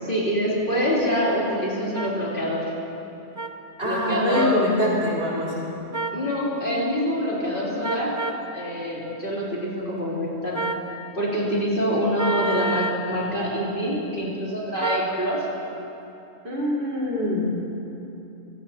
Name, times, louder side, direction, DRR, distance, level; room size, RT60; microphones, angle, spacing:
voice 1, 0.0-2.6 3.8-4.7 6.1-8.1 8.5-10.7 11.1-15.5, equal, 40° left, -7 dB, 3.7 m, -25 dB
sound 1, 1.9-2.1 3.4-3.5 4.3-4.6 5.9-6.2 7.8-8.4 10.5-10.9 12.2-13.0 14.8-15.1, right 2 dB, 20° right, 0.6 m, -28 dB
voice 2, 3.8-5.7 16.4-17.6, left 1 dB, 55° right, -7 dB, 4.6 m, -24 dB
27.0 x 17.0 x 3.0 m, 2.9 s
omnidirectional pair, 1.3 m